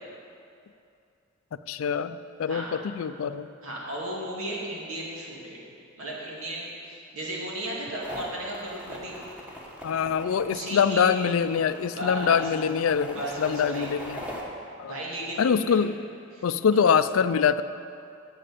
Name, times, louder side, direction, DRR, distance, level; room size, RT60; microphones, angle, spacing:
voice 1, 1.7-3.5 9.8-14.2 14.8-15.0 15.4-16.0 16.4-17.6, left 7 dB, 75° left, 13 dB, 0.4 m, -24 dB
voice 2, 3.6-5.6 6.0-9.2 10.4-11.1 11.9-12.4 13.1-14.0 14.8-15.8 16.3-16.4, right 1 dB, 90° right, -4 dB, 2.5 m, -35 dB
sound 1, 8.0-14.4, equal, 5° right, 1.4 m, -41 dB
7.7 x 7.6 x 8.4 m, 2.5 s
head